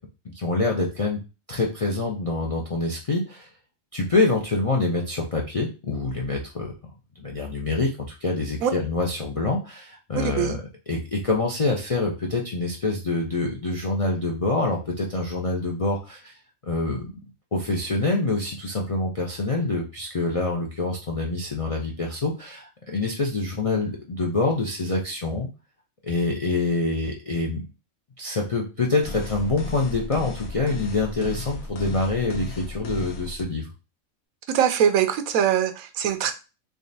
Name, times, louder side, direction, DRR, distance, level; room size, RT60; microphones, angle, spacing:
voice 1, 0.3-1.2 1.5-3.5 3.9-6.7 7.2-10.6 10.9-16.3 16.6-17.1 17.5-25.5 26.0-27.6 28.2-33.7, left 3 dB, 55° left, 0 dB, 0.3 m, -26 dB
voice 2, 10.2-10.6 34.5-36.3, right 9 dB, 85° right, 9 dB, 1.0 m, -22 dB
sound 1, 29.0-33.4, left 3 dB, 75° left, 1.1 m, -35 dB
3.6 x 3.3 x 2.6 m, 0.30 s
omnidirectional pair, 1.4 m